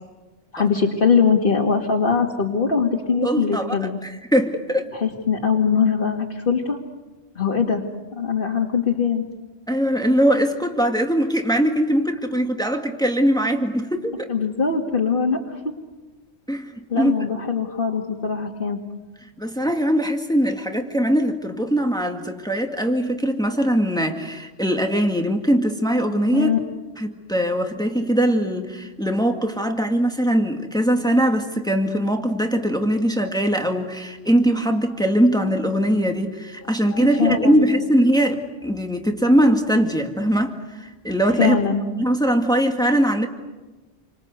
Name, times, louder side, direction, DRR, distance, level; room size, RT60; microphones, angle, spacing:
voice 1, 0.5-4.0 4.9-6.8 7.4-7.8 8.1-9.2 14.3-15.6 16.9-18.8 26.3-26.6 36.9-37.7 41.4-41.8, left 6 dB, 55° left, 1 dB, 2.2 m, -21 dB
voice 2, 3.2-3.8 4.0-4.9 9.7-14.3 16.5-17.2 19.4-26.5 27.0-41.6 41.9-43.3, equal, 5° left, 4 dB, 2.0 m, -21 dB
29.0 x 25.0 x 8.1 m, 1.2 s
omnidirectional pair, 1.1 m